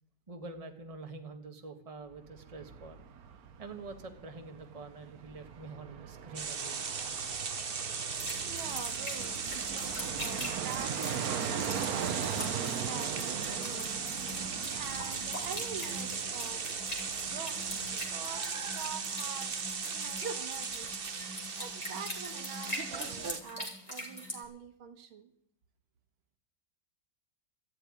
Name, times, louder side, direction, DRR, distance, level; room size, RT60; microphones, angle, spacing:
voice 1, 0.3-3.1 3.6-6.9, right 3 dB, 20° right, 5 dB, 1.4 m, -46 dB
Fixed-wing aircraft airplane, 2.1-19.1 19.4-19.5, right 8 dB, 55° right, 1.1 m, -41 dB
sound 1, 6.3-23.4, right 5 dB, 40° right, 0.9 m, -37 dB
sound 2, 8.1-24.4, equal, 20° left, 3.4 m, -43 dB
voice 2, 8.5-14.1 14.7-16.6 17.2-19.6 19.8-20.9 21.6-25.3, right 7 dB, 80° right, 8 dB, 2.1 m, -46 dB
14.0 x 8.0 x 9.8 m, 0.68 s
omnidirectional pair, 2.2 m